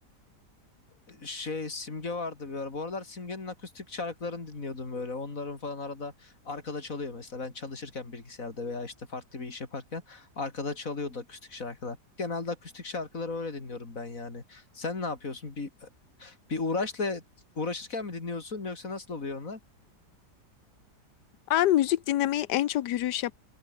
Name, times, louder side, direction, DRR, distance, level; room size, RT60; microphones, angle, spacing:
voice 1, 1.1-15.9 16.2-17.2 17.6-19.6, left 3 dB, 50° left, 3.7 m, -36 dB
voice 2, 21.5-23.3, left 13 dB, 80° left, 1.4 m, -25 dB
open air
omnidirectional pair, 1.8 m